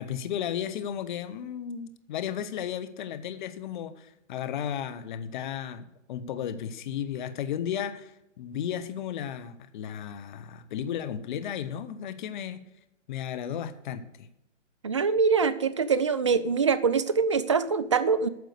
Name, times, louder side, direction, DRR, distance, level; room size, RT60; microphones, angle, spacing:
voice 1, 0.0-12.6 13.1-14.3, left 9 dB, 40° left, 12 dB, 0.9 m, -34 dB
voice 2, 14.8-18.3, right 5 dB, 25° right, 13 dB, 0.3 m, -24 dB
9.4 x 6.3 x 8.0 m, 0.87 s
hypercardioid pair, 140°, 37 cm